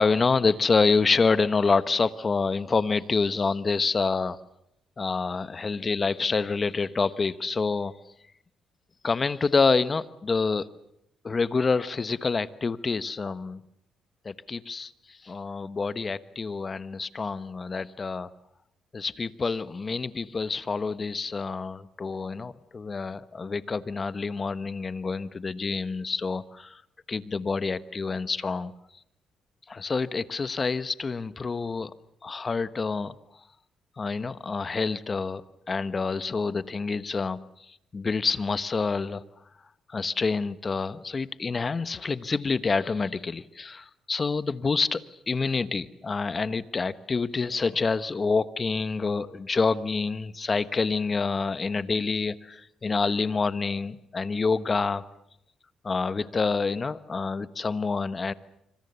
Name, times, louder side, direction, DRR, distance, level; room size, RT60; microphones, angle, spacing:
voice 1, 0.0-4.4 5.0-7.9 9.0-10.7 11.2-13.6 14.2-18.3 18.9-26.8 27.1-28.7 29.7-31.9 32.2-33.1 34.0-39.2 39.9-55.0 55.8-58.3, left 4 dB, 35° left, 14 dB, 1.2 m, -27 dB
25.5 x 25.5 x 7.0 m, 0.77 s
cardioid pair, 90°, 0 cm